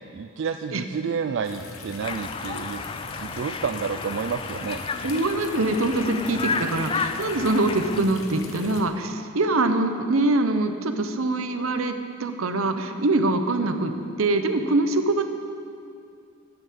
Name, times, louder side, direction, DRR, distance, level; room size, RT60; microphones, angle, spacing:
voice 1, 0.1-2.8 3.2-4.8, right 6 dB, 60° right, 7 dB, 0.3 m, -30 dB
sound 1, 1.4-8.8, left 3 dB, 85° left, 1.1 m, -40 dB
Conversation, 2.0-8.0, left 5 dB, 25° left, 0.3 m, -32 dB
voice 2, 5.0-11.9 12.2-15.2, right 2 dB, 80° right, 8 dB, 0.8 m, -24 dB
11.0 x 8.0 x 7.3 m, 2.4 s
head